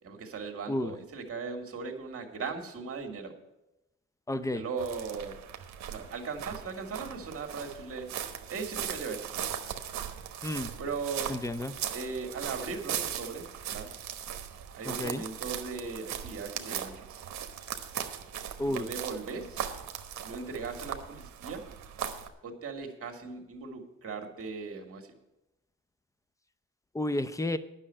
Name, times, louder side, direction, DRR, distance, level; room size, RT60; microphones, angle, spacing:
voice 1, 0.0-3.3 4.5-5.4 5.9-8.1 8.5-9.3 10.8-11.3 11.9-13.9 14.7-17.2 18.7-19.6 20.2-21.6 22.4-25.1, right 4 dB, 50° right, 4 dB, 2.1 m, -38 dB
voice 2, 4.3-4.6 10.4-10.7 11.3-11.7 14.8-15.2 18.6-18.9 26.9-27.6, left 1 dB, 10° left, 13 dB, 0.6 m, -31 dB
sound 1, 4.8-22.3, right 9 dB, 70° right, 1.1 m, -39 dB
9.9 x 6.3 x 8.7 m, 0.94 s
cardioid pair, 90°, 30 cm